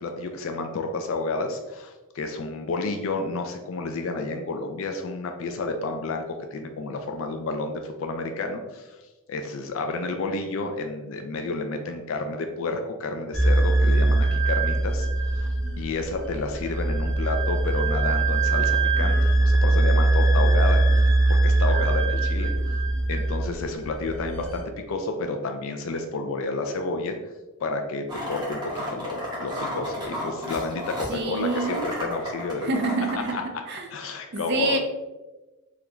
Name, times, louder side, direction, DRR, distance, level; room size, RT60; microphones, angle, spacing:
voice 1, 0.0-9.0 9.3-15.1 15.3-15.5 15.8-19.2 19.4-20.8 21.3-22.8 23.1-27.2 27.6-32.7 33.1-33.4 33.9-34.8, left 3 dB, 65° left, 5 dB, 0.3 m, -30 dB
sound 1, 13.3-24.6, right 2 dB, 5° left, 0.6 m, -22 dB
sound 2, 28.1-33.3, left 1 dB, 20° right, 0.9 m, -33 dB
voice 2, 31.1-31.9 32.6-33.4 33.7-33.9 34.3-34.8, right 3 dB, 50° right, 4 dB, 0.4 m, -27 dB
3.7 x 2.2 x 3.0 m, 1.1 s
head